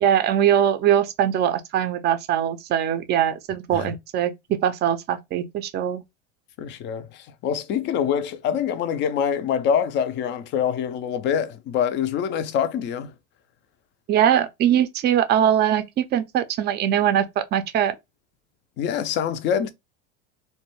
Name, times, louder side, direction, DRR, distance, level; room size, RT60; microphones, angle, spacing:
voice 1, 0.0-6.0 14.1-17.9, right 10 dB, 30° right, 0.4 m, -21 dB
voice 2, 6.6-13.1 18.8-19.7, left 8 dB, 35° left, 0.4 m, -25 dB
2.3 x 2.2 x 3.0 m
supercardioid pair, 110°, 35 cm